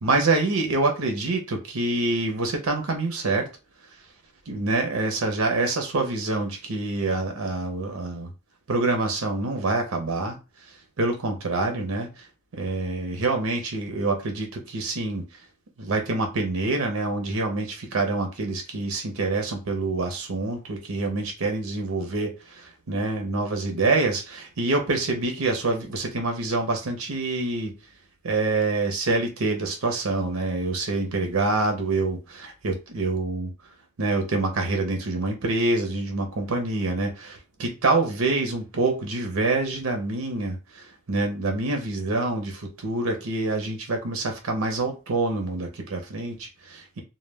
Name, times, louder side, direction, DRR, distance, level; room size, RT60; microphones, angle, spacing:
voice 1, 0.0-3.5 4.5-8.3 8.7-12.3 12.5-15.2 15.8-27.7 28.2-33.5 34.0-47.0, right 3 dB, 75° right, 0.6 m, -26 dB
2.2 x 2.1 x 3.3 m
head